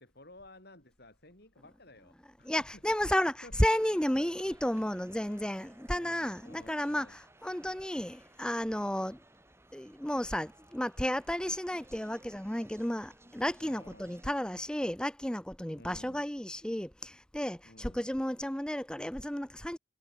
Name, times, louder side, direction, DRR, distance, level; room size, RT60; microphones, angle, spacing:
voice 1, 0.0-3.5 4.1-4.6 6.0-7.2 13.6-14.2 15.8-16.2 17.6-18.1, left 1 dB, 55° left, 6.6 m, -55 dB
voice 2, 2.5-9.2 9.7-19.8, equal, 5° left, 0.8 m, -32 dB
sound 1, 3.7-14.4, right 1 dB, 15° right, 7.0 m, -59 dB
head